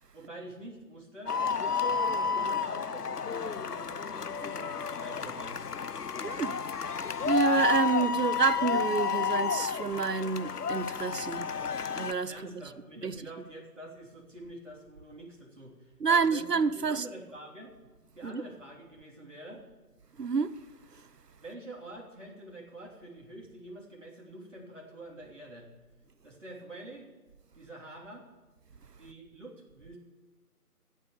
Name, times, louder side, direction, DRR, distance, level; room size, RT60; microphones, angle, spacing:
voice 1, 0.1-5.6 12.3-17.7 18.1-19.6 21.4-25.7 26.2-27.1 27.6-28.2 29.0-30.0, right 1 dB, 50° right, 3.3 m, -46 dB
sound 1, 1.3-12.1, left 6 dB, 75° left, 0.7 m, -31 dB
voice 2, 6.2-6.6 7.0-11.5 11.9-12.6 13.0-13.1 16.0-17.1 18.2-18.4 20.2-20.6 20.9-21.1, right 5 dB, 85° right, 0.9 m, -29 dB
13.5 x 8.3 x 7.2 m
figure-of-eight pair, 175°, 47 cm